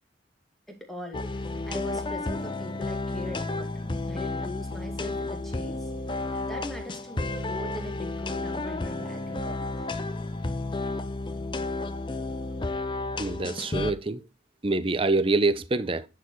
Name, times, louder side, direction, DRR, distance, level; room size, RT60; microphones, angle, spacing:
voice 1, 0.7-3.7 4.1-5.9 6.4-9.9, left 1 dB, ahead, 2.1 m, -41 dB
sound 1, 1.1-13.9, left 2 dB, 25° left, 0.6 m, -32 dB
voice 2, 13.2-14.2 14.6-16.1, right 3 dB, 30° right, 0.6 m, -25 dB
10.5 x 4.8 x 4.6 m
head